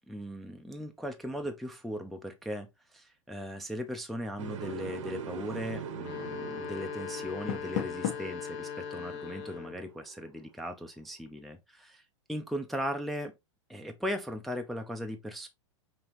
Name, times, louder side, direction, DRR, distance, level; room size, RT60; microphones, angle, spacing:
voice 1, 0.1-12.0 12.3-13.3 13.7-15.5, equal, ahead, 0.5 m, -38 dB
sound 1, 4.4-10.4, right 6 dB, 75° right, 0.9 m, -43 dB
sound 2, 5.9-9.9, left 7 dB, 45° left, 1.0 m, -40 dB
Door, 7.2-8.4, left 10 dB, 60° left, 1.2 m, -35 dB
5.3 x 2.9 x 3.0 m
hypercardioid pair, 130°, 16 cm